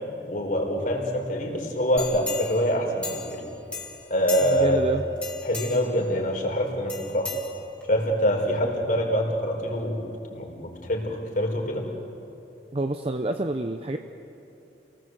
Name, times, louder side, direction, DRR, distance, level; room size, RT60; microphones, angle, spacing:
voice 1, 0.3-3.4 4.1-4.8 5.4-7.3 7.9-10.0 10.3-11.8, equal, 50° left, 0 dB, 4.5 m, -25 dB
sound 1, 2.0-3.4 3.7-4.8 5.2-6.0 6.9-8.0 8.5-8.6, left 4 dB, 5° left, 3.3 m, -36 dB
voice 2, 4.4-5.0 12.7-14.0, right 2 dB, 35° right, 7 dB, 0.8 m, -28 dB
28.5 x 19.0 x 8.0 m, 2.9 s
head